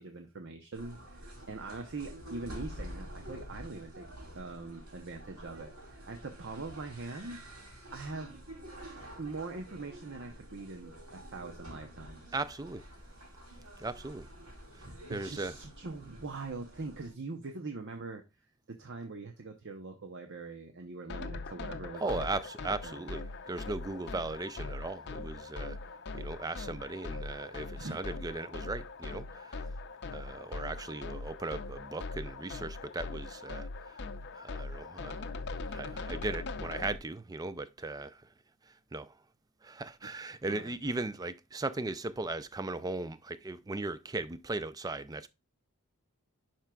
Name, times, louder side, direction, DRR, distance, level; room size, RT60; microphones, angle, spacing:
voice 1, 0.0-4.1 4.3-7.4 7.9-8.4 9.2-12.3 14.8-18.2 18.7-22.2 22.8-23.0 27.8-28.0 40.5-40.7, right 3 dB, 55° right, 0.8 m, -42 dB
sound 1, 0.7-17.1, equal, 75° right, 3.6 m, -48 dB
voice 2, 12.3-12.9 13.8-14.3 14.8-15.6 22.0-25.8 26.1-29.7 30.1-34.0 34.3-38.2 38.7-39.2 39.6-45.3, right 2 dB, 15° right, 0.4 m, -38 dB
sound 2, 21.1-37.0, left 3 dB, 50° left, 0.6 m, -41 dB
11.0 x 4.5 x 2.3 m
head